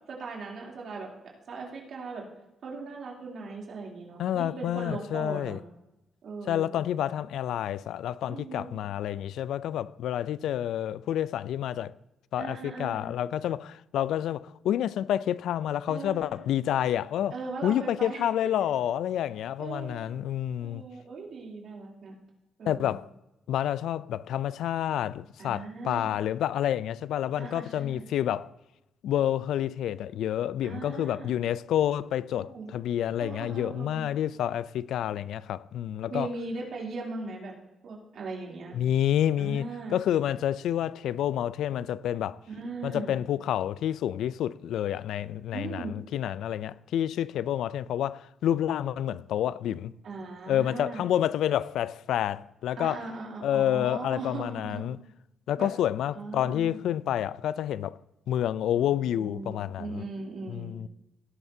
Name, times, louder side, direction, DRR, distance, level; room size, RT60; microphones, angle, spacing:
voice 1, 0.1-1.1 1.5-2.2 2.6-5.6 6.2-6.8 8.3-8.8 12.4-13.1 15.9-16.4 17.3-18.2 19.6-20.1 20.6-22.1 22.6-23.0 25.4-26.1 27.4-28.1 30.6-31.3 32.3-32.7 33.2-34.1 36.1-37.5 37.8-38.7 39.4-40.0 42.5-43.2 45.5-46.0 50.0-51.1 52.8-54.9 55.6-55.7 56.1-56.8 58.8-60.8, right 3 dB, 55° right, 3.1 m, -39 dB
voice 2, 4.2-5.6 6.5-12.0 12.3-17.4 17.6-20.8 22.6-23.1 23.5-28.5 29.0-36.3 38.7-42.4 42.8-49.9 50.5-53.0 53.4-55.0 55.5-58.0 58.3-60.0 60.5-60.9, left 11 dB, 85° left, 0.3 m, -29 dB
17.0 x 11.0 x 2.7 m
cardioid pair, 150°, 0 cm